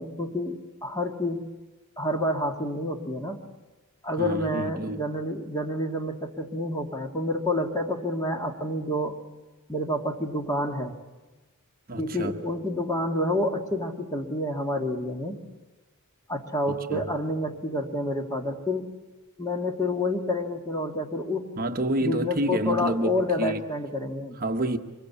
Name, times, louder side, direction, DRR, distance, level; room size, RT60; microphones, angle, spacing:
voice 1, 0.0-1.4 2.0-3.4 4.0-9.2 9.7-10.9 12.0-15.4 16.3-18.8 19.4-21.5 22.0-24.4, left 1 dB, 15° left, 1.9 m, -28 dB
voice 2, 4.2-5.0 11.9-12.4 16.7-17.1 21.6-23.6 24.3-24.8, right 1 dB, 40° right, 1.1 m, -29 dB
24.5 x 22.0 x 8.5 m
head